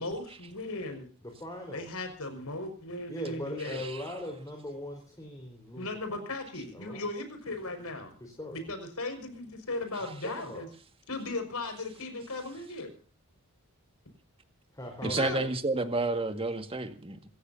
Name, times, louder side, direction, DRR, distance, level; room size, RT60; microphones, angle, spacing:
voice 1, 0.0-1.0 1.7-3.8 5.7-8.1 8.5-10.7 11.1-12.9 15.2-15.5, left 2 dB, 75° left, 7 dB, 5.8 m, -37 dB
voice 2, 1.2-1.9 3.1-6.2 6.7-7.0 8.2-8.6 10.2-10.7 14.7-15.4, left 1 dB, 15° left, 0 dB, 4.4 m, -40 dB
voice 3, 15.0-17.2, right 2 dB, 25° right, 7 dB, 1.9 m, -30 dB
27.5 x 14.5 x 2.8 m, 0.42 s
head